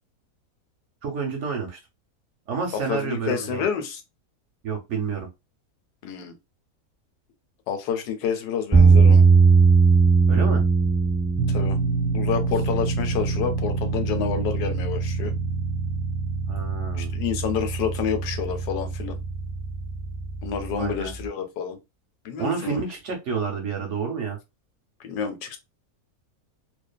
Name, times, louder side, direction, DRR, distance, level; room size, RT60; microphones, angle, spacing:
voice 1, 1.0-1.8 2.5-3.6 4.6-5.3 10.3-10.6 16.5-17.1 20.7-21.1 22.4-24.4, right 5 dB, 60° right, 0.8 m, -29 dB
voice 2, 2.7-4.0 6.0-6.4 7.7-9.3 11.5-11.8 12.1-15.3 16.9-19.2 20.4-21.8 22.2-22.8 25.0-25.6, left 7 dB, 90° left, 1.2 m, -29 dB
sound 1, 8.7-21.2, right 4 dB, 5° right, 0.7 m, -21 dB
sound 2, 11.4-20.9, right 4 dB, 85° right, 1.1 m, -30 dB
2.4 x 2.4 x 2.2 m
omnidirectional pair, 1.6 m